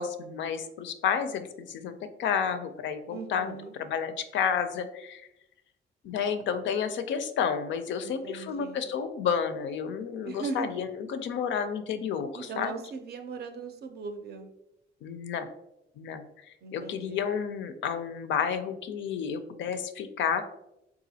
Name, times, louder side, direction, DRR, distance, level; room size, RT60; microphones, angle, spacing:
voice 1, 0.0-5.3 6.0-12.7 15.0-15.5 16.0-16.2 16.7-20.4, left 7 dB, 70° left, 10 dB, 0.4 m, -31 dB
voice 2, 3.1-3.7 8.0-8.9 10.2-10.8 12.3-14.5 16.6-17.2, right 4 dB, 55° right, 6 dB, 0.5 m, -39 dB
3.9 x 2.3 x 2.7 m, 0.87 s
cardioid pair, 90°, 20 cm